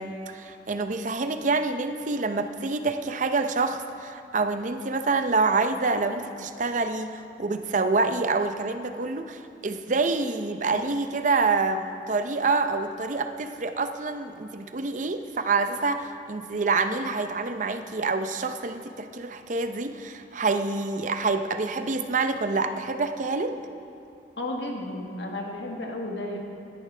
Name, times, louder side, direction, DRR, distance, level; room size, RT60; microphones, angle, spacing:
voice 1, 0.0-23.6, right 3 dB, 45° right, 8 dB, 0.6 m, -27 dB
voice 2, 24.4-26.4, left 1 dB, 85° left, 1 dB, 1.6 m, -33 dB
18.0 x 12.5 x 3.3 m, 2.5 s
head